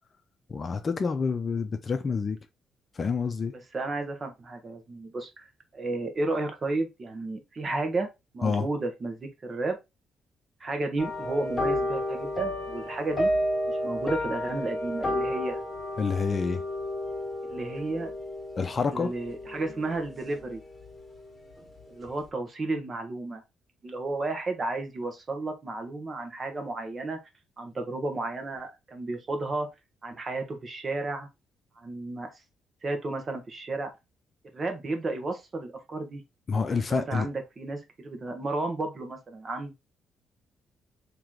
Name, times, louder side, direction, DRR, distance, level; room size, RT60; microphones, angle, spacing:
voice 1, 0.5-2.4 3.0-3.5 8.4-8.7 16.0-16.6 18.6-19.1 36.5-37.3, left 5 dB, 40° left, 0.6 m, -28 dB
voice 2, 3.5-5.5 5.7-8.1 8.3-9.8 10.6-13.3 13.7-15.6 17.4-18.1 18.9-20.6 21.9-23.4 23.8-27.2 27.6-29.7 30.0-31.3 31.8-32.3 32.8-33.9 34.5-36.2 36.7-39.7, right 2 dB, 35° right, 1.2 m, -32 dB
sound 1, 11.0-20.6 20.8-21.2 21.6-21.7, left 1 dB, 20° left, 1.6 m, -31 dB
3.0 x 3.0 x 3.7 m
cardioid pair, 90°, 0 cm